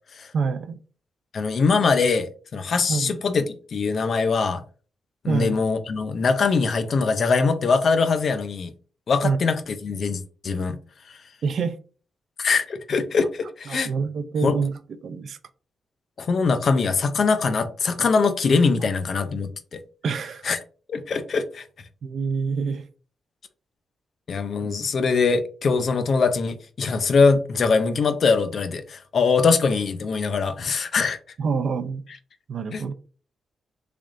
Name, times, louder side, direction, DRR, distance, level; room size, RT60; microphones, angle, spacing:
voice 1, 0.3-0.8 2.9-3.2 5.3-5.6 9.2-9.4 11.4-11.8 13.7-15.4 20.0-20.4 22.0-22.8 24.6-24.7 31.4-32.0 32.5-32.9, right 5 dB, 60° right, 0.4 m, -26 dB
voice 2, 1.3-4.6 5.2-8.7 9.1-10.8 11.1-11.2 12.4-13.9 14.4-14.6 16.2-19.8 20.4-20.6 20.9-21.6 24.3-31.2 32.7-32.8, left 4 dB, 50° left, 0.5 m, -22 dB
3.6 x 3.4 x 2.5 m
wide cardioid pair, 130°, 0 cm